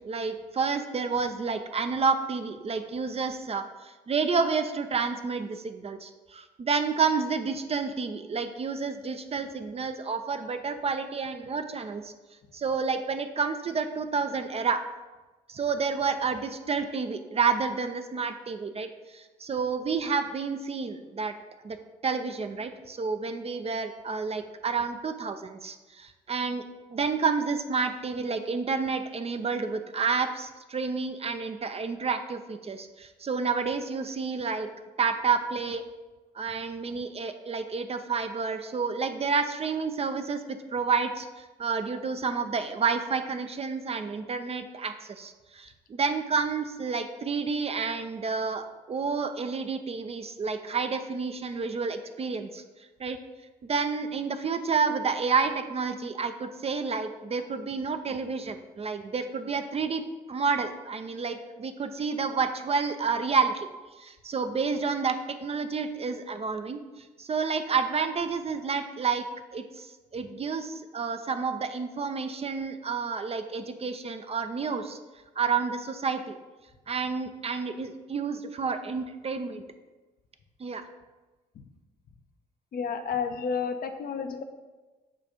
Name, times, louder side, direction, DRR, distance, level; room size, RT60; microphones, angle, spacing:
voice 1, 0.0-12.1 12.5-14.8 15.5-21.3 21.6-21.8 22.0-26.6 26.9-34.7 35.0-35.8 36.3-52.6 53.0-53.2 53.7-60.0 60.3-63.7 64.0-69.2 69.5-69.9 70.1-75.0 75.4-76.4 76.9-79.6 80.6-80.9, right 5 dB, 30° right, 8 dB, 0.5 m, -30 dB
voice 2, 82.7-84.4, left 6 dB, 45° left, 7 dB, 0.6 m, -31 dB
7.4 x 2.5 x 5.1 m, 1.2 s
hypercardioid pair, 45°, 21 cm